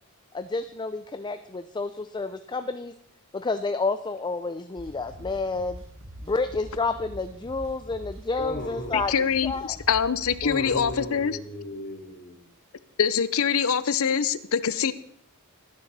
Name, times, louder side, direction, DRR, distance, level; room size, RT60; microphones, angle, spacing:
voice 1, 0.3-2.9 3.3-5.8 6.2-9.8, left 3 dB, 20° left, 10 dB, 0.5 m, -30 dB
sound 1, 4.8-11.1, equal, 60° right, 1.6 m, -43 dB
voice 2, 8.4-9.0 10.4-12.4, left 2 dB, 50° left, 2 dB, 3.6 m, -35 dB
voice 3, 8.9-11.4 13.0-14.9, left 7 dB, 65° left, 16 dB, 0.7 m, -24 dB
18.5 x 9.8 x 4.2 m, 0.68 s
head